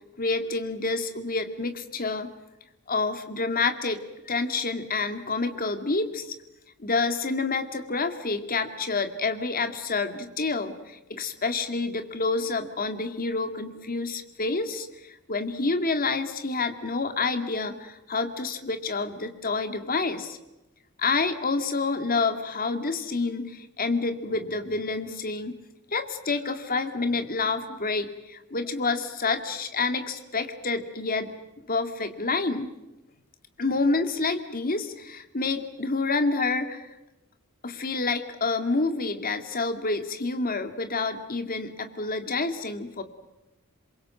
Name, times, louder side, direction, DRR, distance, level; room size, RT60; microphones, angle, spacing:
voice 1, 0.2-2.3 2.9-4.0 4.3-6.3 6.8-20.4 21.0-25.6 25.9-31.3 31.7-32.7 33.6-36.9 37.6-43.0, left 3 dB, 40° left, 7 dB, 2.3 m, -28 dB
27.5 x 23.0 x 7.8 m, 0.99 s
head